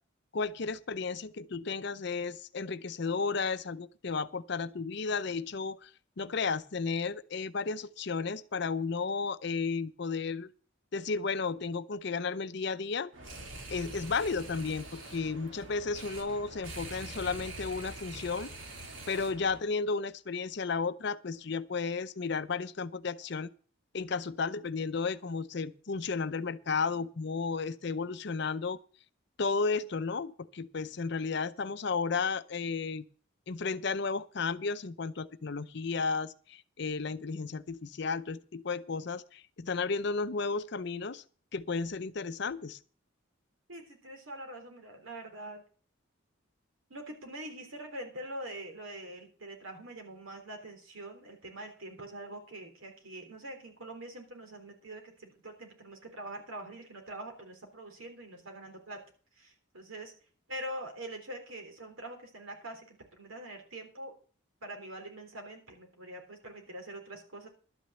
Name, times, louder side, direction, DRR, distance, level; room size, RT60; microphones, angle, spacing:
voice 1, 0.3-5.9 6.2-10.5 10.9-13.1 13.7-18.5 19.1-23.5 23.9-28.8 29.4-33.0 33.5-41.2 41.5-42.8, left 4 dB, 55° left, 0.6 m, -33 dB
sound 1, 13.1-19.6, right 2 dB, 70° right, 2.7 m, -44 dB
voice 2, 43.7-45.6 46.9-59.0 59.4-60.1 60.5-64.1 64.6-67.5, right 1 dB, 90° right, 3.6 m, -44 dB
12.0 x 6.3 x 8.0 m
head